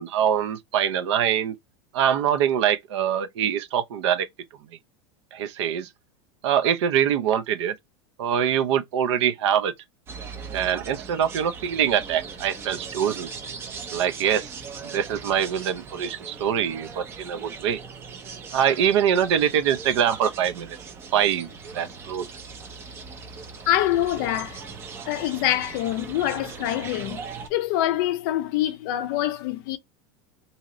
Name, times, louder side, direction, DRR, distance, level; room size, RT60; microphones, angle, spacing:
voice 1, 0.0-1.6 1.9-4.3 5.3-5.9 6.4-7.8 8.2-9.7 10.5-13.3 13.9-14.5 14.8-17.8 18.5-20.8 21.1-21.5 21.7-22.3, right 9 dB, 75° right, 0.6 m, -24 dB
sound 1, 10.1-27.5, right 5 dB, 15° right, 0.4 m, -39 dB
voice 2, 23.7-24.7 25.1-29.8, left 13 dB, 50° left, 0.4 m, -25 dB
2.7 x 2.5 x 2.9 m
supercardioid pair, 170°, 15 cm